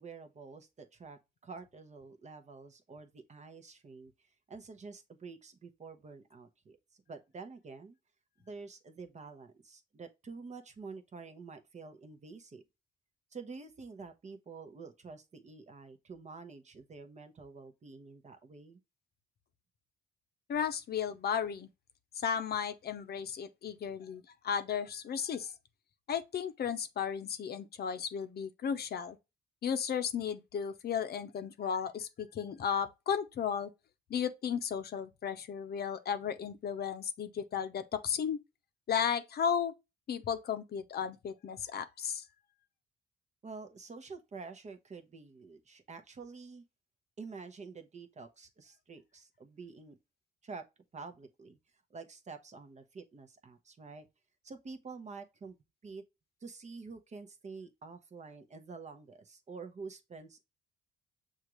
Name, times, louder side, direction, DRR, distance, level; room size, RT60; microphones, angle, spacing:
voice 1, 0.0-8.0 8.4-12.6 13.3-18.8 43.4-46.6 47.2-50.0 50.4-50.6 50.9-51.6 51.9-54.1 54.4-55.5 55.8-56.0 56.4-60.4, right 4 dB, 35° right, 0.8 m, -48 dB
voice 2, 20.5-21.7 22.2-25.5 26.1-29.2 29.6-33.7 34.1-38.4 38.9-39.7 40.1-42.2, left 7 dB, 50° left, 0.6 m, -34 dB
6.4 x 2.5 x 3.0 m
cardioid pair, 90°, 20 cm